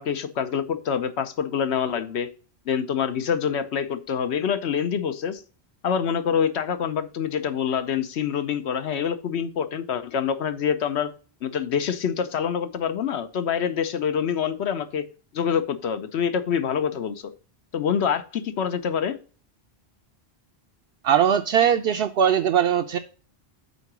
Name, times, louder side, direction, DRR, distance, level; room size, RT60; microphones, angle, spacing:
voice 1, 0.0-2.3 2.7-5.4 5.8-11.1 11.4-15.0 15.3-17.3 17.7-19.2, left 7 dB, 85° left, 1.1 m, -26 dB
voice 2, 21.0-23.0, right 9 dB, 75° right, 0.8 m, -20 dB
8.3 x 3.8 x 5.9 m
omnidirectional pair, 1.1 m